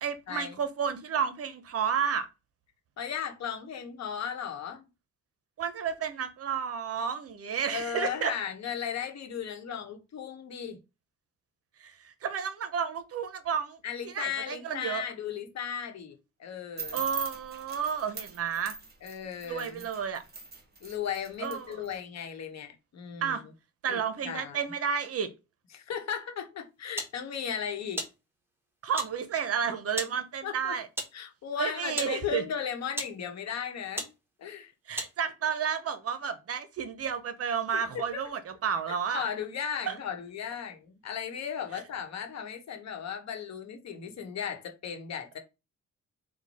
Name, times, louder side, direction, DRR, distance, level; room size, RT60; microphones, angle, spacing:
voice 1, 0.0-2.3 5.6-8.3 11.8-13.8 14.0-15.0 16.9-18.8 19.4-20.2 21.4-21.9 23.2-23.4 23.8-25.3 28.8-30.9 31.6-32.4 34.9-39.3 39.9-40.0, right 7 dB, 50° right, 0.7 m, -31 dB
voice 2, 3.0-4.8 7.7-10.8 13.8-17.0 19.0-19.9 20.8-23.4 23.9-24.6 25.7-28.0 30.4-30.7 31.1-34.1 34.4-34.7 37.7-38.2 39.1-45.4, left 8 dB, 60° left, 1.1 m, -36 dB
sound 1, 16.8-22.0, right 5 dB, 35° right, 1.4 m, -41 dB
sound 2, 27.0-27.2 28.0-28.2 29.0-29.2 30.0-30.2 31.0-31.2 32.0-32.2 32.9-33.2 34.0-34.2 35.0-35.1, right 1 dB, 10° right, 1.2 m, -35 dB
4.5 x 2.2 x 4.1 m
cardioid pair, 90°, 30 cm